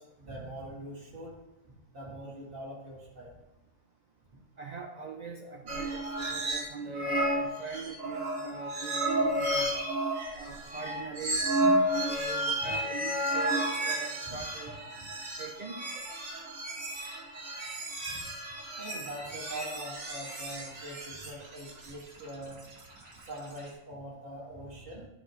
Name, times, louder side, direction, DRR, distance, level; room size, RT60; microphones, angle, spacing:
voice 1, 0.0-1.3 1.6-3.3 12.6-12.7 14.3-14.5 16.0-16.2 18.1-18.3 18.8-22.6 23.1-25.1, right 1 dB, 40° right, -5 dB, 2.1 m, -43 dB
voice 2, 4.6-9.8 10.3-11.4 11.9-14.9 15.4-15.8, right 5 dB, 80° right, 2 dB, 0.3 m, -41 dB
sound 1, 5.7-6.7 6.9-23.7, right 1 dB, 65° right, 1.7 m, -32 dB
10.5 x 5.1 x 3.0 m, 1.0 s
omnidirectional pair, 1.5 m